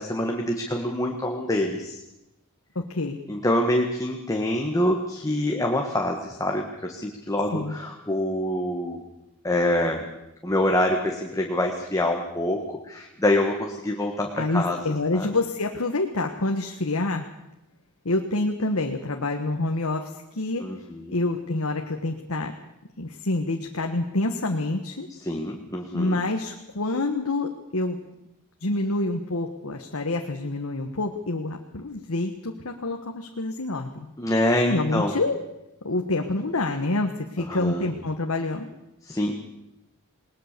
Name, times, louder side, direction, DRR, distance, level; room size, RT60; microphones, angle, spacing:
voice 1, 0.0-2.0 3.3-9.0 9.4-10.0 10.4-14.8 15.1-15.3 20.6-21.0 25.2-26.2 34.2-35.1 37.5-37.9 39.0-39.3, left 1 dB, 15° left, 1 dB, 1.7 m, -25 dB
voice 2, 2.7-3.2 7.5-7.7 14.4-17.3 18.0-20.7 21.1-22.5 23.0-25.1 25.9-28.0 28.6-34.1 34.6-35.3 35.8-38.7, left 2 dB, 70° left, 3 dB, 1.5 m, -27 dB
21.0 x 19.5 x 6.9 m, 0.89 s
head